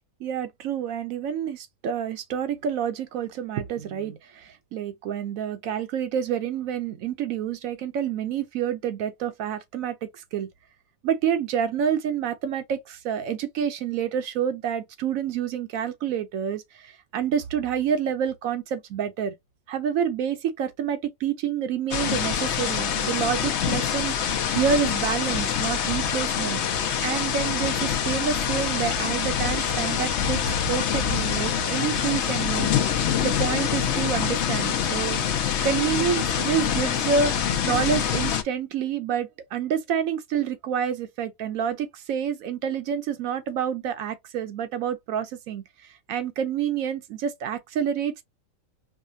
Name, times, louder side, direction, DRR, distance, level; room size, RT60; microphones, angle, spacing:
voice 1, 0.2-10.5 11.0-19.3 19.7-26.6 27.0-30.4 30.7-32.7 33.2-48.2, right 8 dB, 75° right, 1.0 m, -28 dB
sound 1, 21.9-38.4, left 8 dB, 60° left, 0.9 m, -25 dB
4.8 x 2.2 x 2.5 m
omnidirectional pair, 1.5 m